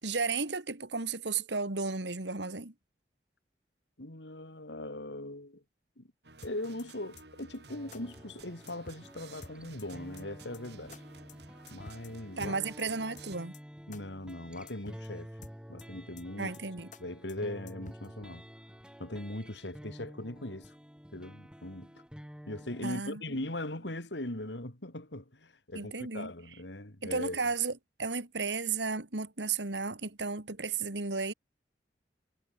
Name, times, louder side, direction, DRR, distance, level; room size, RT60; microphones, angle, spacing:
voice 1, 0.0-2.7 12.4-13.5 16.4-16.9 22.8-23.4 25.7-26.3 27.0-31.3, right 4 dB, 90° right, 2.3 m, -34 dB
voice 2, 4.0-5.6 6.0-6.1 6.4-11.0 11.7-12.5 13.9-15.3 15.7-16.5 17.0-18.5 19.0-20.7 21.1-22.0 22.5-27.4, left 1 dB, 90° left, 3.6 m, -40 dB
sound 1, 6.2-13.4, right 4 dB, 70° right, 7.3 m, -54 dB
sound 2, 6.4-6.8 7.2-7.3 7.5-7.6 7.9-8.0 8.3-8.4 8.7-9.1 9.4-9.8 10.2-10.3 10.5-10.6 10.9-11.0 11.3-11.4 11.7-12.1 12.4-12.8 13.2-13.3 13.5-13.6 13.9-14.0 14.3-14.4 14.7-15.1 15.4-15.8 16.2-16.3 16.5-16.6 16.9-17.0 17.3-17.4 17.7-18.1, left 3 dB, 45° left, 1.3 m, -50 dB
sound 3, 7.7-22.9, equal, 5° right, 6.3 m, -50 dB
head